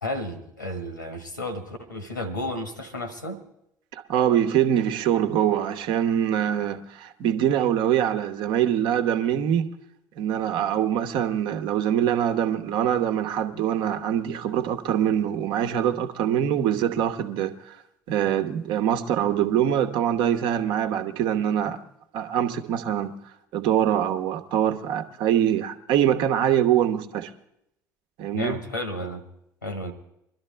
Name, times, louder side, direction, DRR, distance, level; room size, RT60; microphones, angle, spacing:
voice 1, 0.0-3.4 28.3-29.2 29.6-29.9, left 1 dB, 90° left, 1.5 m, -32 dB
voice 2, 3.9-9.7 10.2-17.8 18.1-21.8 22.1-23.1 23.5-27.3 28.2-28.6, right 10 dB, 55° right, 1.1 m, -24 dB
22.0 x 12.5 x 3.4 m
figure-of-eight pair, 60°, 10 cm